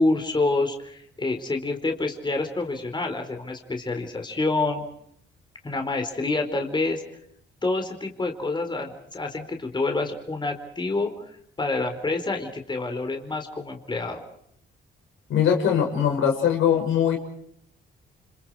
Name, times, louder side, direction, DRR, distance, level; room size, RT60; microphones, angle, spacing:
voice 1, 0.0-4.8 5.6-7.0 7.6-11.1 11.6-14.2, left 3 dB, 20° left, 4 dB, 4.2 m, -27 dB
voice 2, 15.3-17.2, left 8 dB, 85° left, 2 dB, 6.7 m, -21 dB
30.0 x 27.0 x 4.8 m, 0.72 s
cardioid pair, 90°, 20 cm